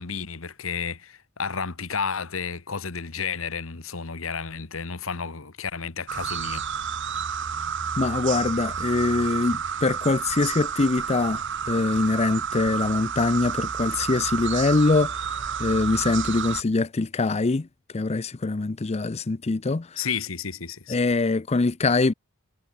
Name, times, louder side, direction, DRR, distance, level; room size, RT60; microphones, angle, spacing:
voice 1, 0.0-6.6 20.0-21.0, left 6 dB, 75° left, 1.5 m, -32 dB
sound 1, 6.1-16.6, right 7 dB, 60° right, 1.6 m, -30 dB
voice 2, 8.0-17.7 17.9-20.1 20.9-22.1, left 3 dB, 30° left, 0.5 m, -23 dB
head